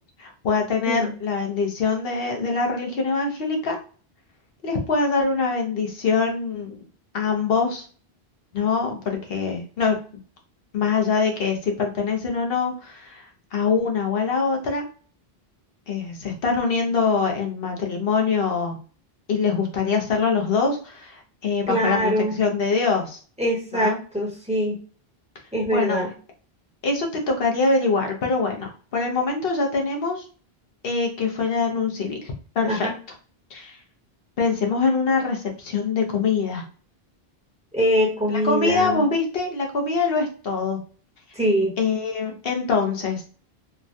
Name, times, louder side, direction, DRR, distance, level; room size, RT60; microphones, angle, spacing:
voice 1, 0.2-3.8 4.6-6.8 7.1-7.8 8.5-10.0 10.7-14.8 15.9-18.8 19.3-23.2 23.7-24.0 25.7-26.0 26.8-30.2 30.8-32.9 33.5-33.8 34.4-36.6 38.4-40.8 41.8-43.2, left 4 dB, 65° left, 2 dB, 0.9 m, -24 dB
voice 2, 21.7-22.4 23.4-24.8 25.5-26.1 32.7-32.9 37.7-39.0 41.3-41.7, equal, 5° right, -4 dB, 1.0 m, -23 dB
3.3 x 2.2 x 2.6 m, 0.40 s
omnidirectional pair, 1.0 m